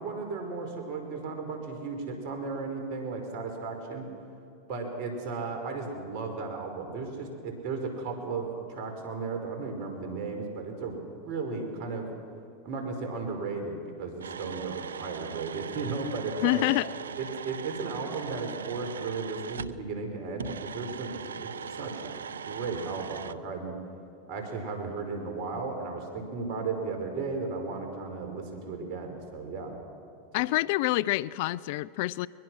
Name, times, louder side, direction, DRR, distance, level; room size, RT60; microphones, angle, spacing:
voice 1, 0.0-4.1 4.7-12.1 12.6-16.6 17.2-22.1 22.4-23.7 24.3-29.8 30.3-30.4, right 4 dB, 55° right, 4 dB, 4.8 m, -35 dB
sound 1, 14.2-19.8 20.4-23.3, right 6 dB, 90° right, 0.6 m, -39 dB
voice 2, 16.4-16.9 30.3-32.3, left 19 dB, 60° left, 21 dB, 0.4 m, -27 dB
22.0 x 22.0 x 6.3 m, 2.6 s
hypercardioid pair, 100°, 0 cm